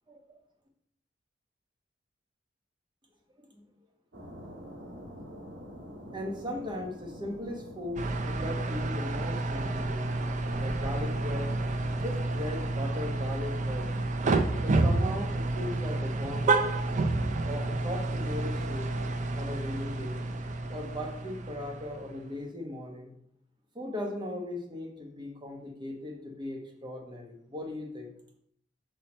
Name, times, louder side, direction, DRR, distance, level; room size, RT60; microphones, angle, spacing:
voice 1, 0.1-0.4 3.4-3.6 6.1-10.1 10.6-11.5 12.0-13.9 14.6-16.8 17.4-18.9 19.3-20.2 20.7-23.1 23.7-28.1, left 1 dB, 25° right, 2 dB, 1.1 m, -38 dB
sound 1, 4.1-12.8, equal, 70° right, 1.3 m, -47 dB
sound 2, 8.0-22.3, right 2 dB, 40° right, 0.5 m, -30 dB
5.5 x 4.3 x 4.3 m, 0.69 s
head